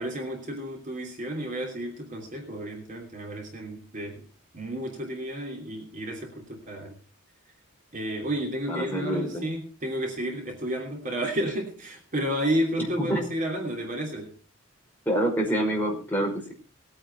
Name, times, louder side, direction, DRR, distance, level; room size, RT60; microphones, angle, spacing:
voice 1, 0.0-4.3 4.5-7.0 7.9-14.3, equal, 35° right, 0 dB, 3.1 m, -31 dB
voice 2, 8.7-9.4 13.0-13.2 15.1-16.5, right 1 dB, 10° left, -1 dB, 5.3 m, -27 dB
20.5 x 9.2 x 4.5 m, 0.36 s
head